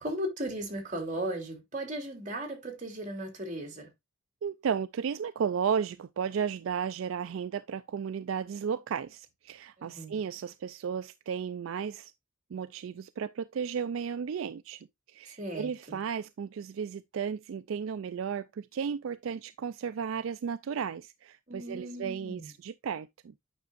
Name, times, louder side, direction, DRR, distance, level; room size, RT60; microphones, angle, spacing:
voice 1, 0.0-3.9 9.8-10.1 15.2-16.0 21.5-22.5, right 1 dB, 35° right, 3.0 m, -37 dB
voice 2, 4.4-12.1 12.5-23.3, right 7 dB, 70° right, 0.3 m, -34 dB
9.4 x 6.1 x 2.4 m
head